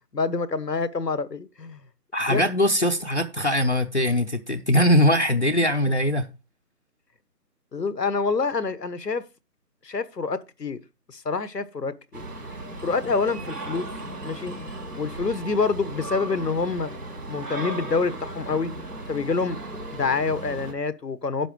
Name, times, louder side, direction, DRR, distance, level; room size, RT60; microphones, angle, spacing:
voice 1, 0.1-1.8 2.3-2.4 7.7-9.2 9.8-10.8 11.1-12.2 12.8-13.9 14.2-14.5 15.0-16.9 17.3-18.7 19.1-19.6 19.9-21.5, left 4 dB, 75° left, 1.3 m, -27 dB
voice 2, 2.1-6.3, equal, 45° left, 0.8 m, -21 dB
sound 1, 12.1-20.7, right 2 dB, 70° right, 4.1 m, -36 dB
10.0 x 6.5 x 4.9 m
figure-of-eight pair, 180°, 49 cm